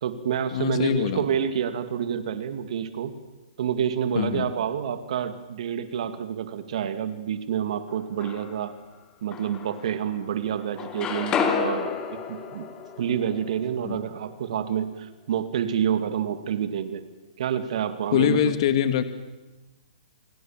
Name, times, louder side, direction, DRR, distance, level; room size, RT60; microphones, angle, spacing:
voice 1, 0.0-3.1 3.6-8.7 9.2-12.7 13.0-17.0 17.4-18.5, right 9 dB, 60° right, 10 dB, 2.3 m, -28 dB
voice 2, 0.5-1.3 4.2-4.5 13.8-14.0 18.1-19.0, left 10 dB, 50° left, 10 dB, 1.7 m, -23 dB
sound 1, 7.9-8.7 9.3-10.3 10.6-14.5, left 6 dB, 20° left, 2.6 m, -31 dB
28.5 x 18.5 x 7.5 m, 1.1 s
hypercardioid pair, 150°, 4 cm